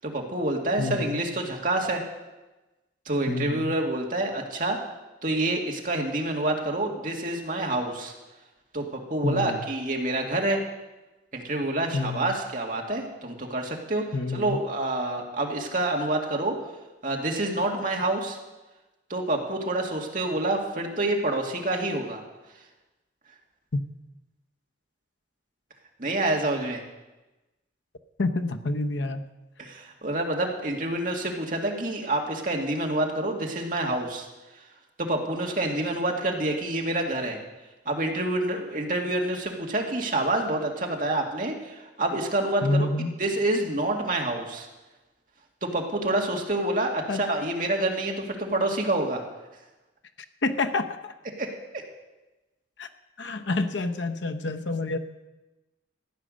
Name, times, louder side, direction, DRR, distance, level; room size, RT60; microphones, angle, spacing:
voice 1, 0.0-2.0 3.1-4.8 5.2-8.1 8.7-10.6 11.3-14.0 14.3-16.6 17.0-18.4 19.1-22.2 26.0-26.8 29.6-34.3 35.0-37.4 37.9-42.9 43.2-44.7 45.6-49.2 51.4-51.8, right 2 dB, 45° right, 1 dB, 2.1 m, -27 dB
voice 2, 0.8-1.2 3.3-3.7 9.2-9.7 11.9-12.3 14.1-14.6 23.7-23.8 28.2-29.3 42.6-43.1 47.1-47.2 50.4-51.1 52.8-52.9 53.2-55.0, left 2 dB, 75° left, 7 dB, 0.9 m, -28 dB
14.5 x 9.9 x 6.4 m, 1.1 s
head